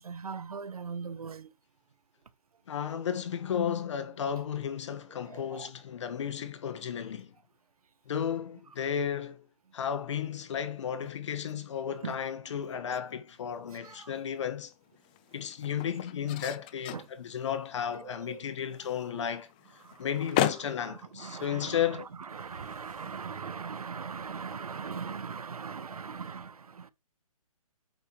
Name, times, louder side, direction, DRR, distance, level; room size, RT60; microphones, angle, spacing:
voice 1, 0.0-1.5 5.2-5.7 11.9-12.2 13.7-14.1 16.9-17.1 17.9-18.4 19.1-19.3 19.8-26.9, right 5 dB, 75° right, 1.1 m, -40 dB
voice 2, 2.7-7.3 8.0-9.5 9.7-14.7 15.3-19.5 20.0-22.1, left 8 dB, 50° left, 1.4 m, -33 dB
sound 1, 13.4-23.8, left 13 dB, 15° left, 0.3 m, -38 dB
8.6 x 6.8 x 3.0 m
hypercardioid pair, 150°, 19 cm